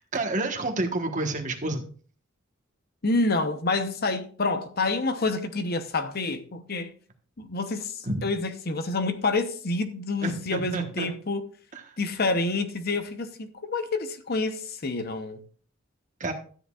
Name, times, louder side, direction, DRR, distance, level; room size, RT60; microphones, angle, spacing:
voice 1, 0.1-1.8 8.0-8.2 10.2-11.1 11.7-11.8 16.2-16.3, right 2 dB, 40° right, 1.3 m, -29 dB
voice 2, 3.0-6.9 7.4-11.5 12.0-15.4, left 3 dB, 50° left, 0.8 m, -28 dB
13.0 x 9.5 x 2.4 m
head